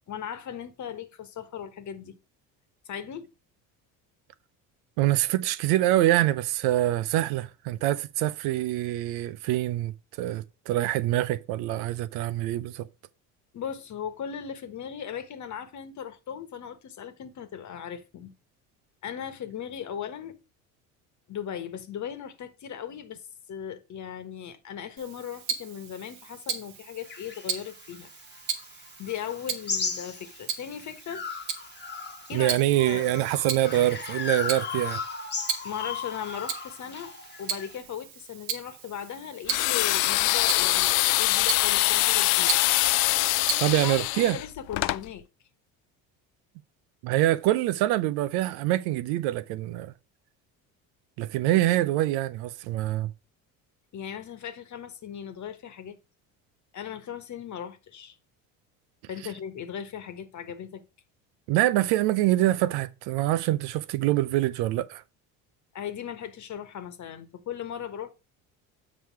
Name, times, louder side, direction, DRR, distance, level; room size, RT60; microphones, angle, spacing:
voice 1, 0.1-2.1 2.8-3.3 13.5-18.3 19.0-20.3 21.3-23.2 23.5-28.1 28.7-31.2 32.3-32.6 32.9-33.2 35.6-37.1 37.4-42.6 43.8-45.2 53.9-56.0 56.7-58.2 59.1-60.8 65.7-68.1, left 8 dB, 45° left, 1.3 m, -38 dB
voice 2, 5.0-12.9 32.3-35.0 43.6-44.4 47.0-49.9 51.2-53.1 61.5-65.0, right 15 dB, 75° right, 0.7 m, -25 dB
Tick-tock, 25.0-44.0, right 7 dB, 90° right, 1.4 m, -37 dB
sound 1, 27.1-30.6 31.1-37.8, left 5 dB, 25° left, 1.2 m, -36 dB
sound 2, 39.5-45.0, left 19 dB, 70° left, 0.5 m, -24 dB
7.6 x 4.9 x 4.6 m
supercardioid pair, 85°, 39 cm